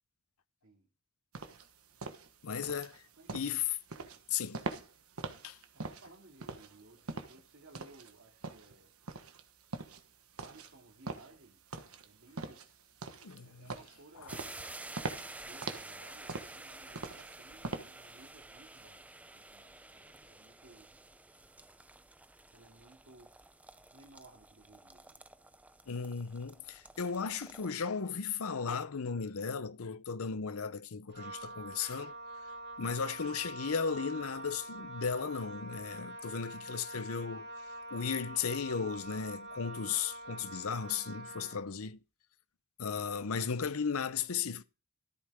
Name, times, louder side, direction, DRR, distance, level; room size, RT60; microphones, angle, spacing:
sound 1, 1.3-18.2, right 3 dB, 85° right, 1.3 m, -43 dB
voice 1, 2.4-3.0 3.3-3.8 4.3-4.6 5.4-5.6 13.2-13.7 25.9-32.2 32.8-37.5 37.9-42.0 42.8-44.6, left 6 dB, 80° left, 0.7 m, -35 dB
voice 2, 3.2-3.5 5.7-8.9 10.4-11.6 12.0-14.6 15.4-20.9 22.5-23.3 23.9-25.2, right 2 dB, 65° right, 2.4 m, -59 dB
sound 2, 14.3-27.7, right 2 dB, 5° right, 0.5 m, -51 dB
Wind instrument woodwind instrument, 31.1-41.7, right 2 dB, 50° right, 2.1 m, -45 dB
13.5 x 8.6 x 3.6 m
head